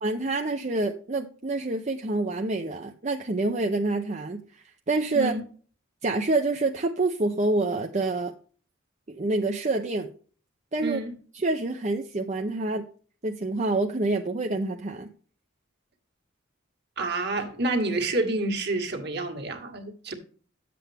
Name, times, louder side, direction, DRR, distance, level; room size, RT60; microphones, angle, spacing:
voice 1, 0.0-5.3 6.0-8.3 9.1-10.1 10.7-11.0 11.3-12.9 13.2-15.1, right 2 dB, 35° right, 0.6 m, -27 dB
voice 2, 10.8-11.1 17.0-20.1, right 2 dB, 55° right, 1.7 m, -28 dB
10.5 x 7.7 x 3.4 m
head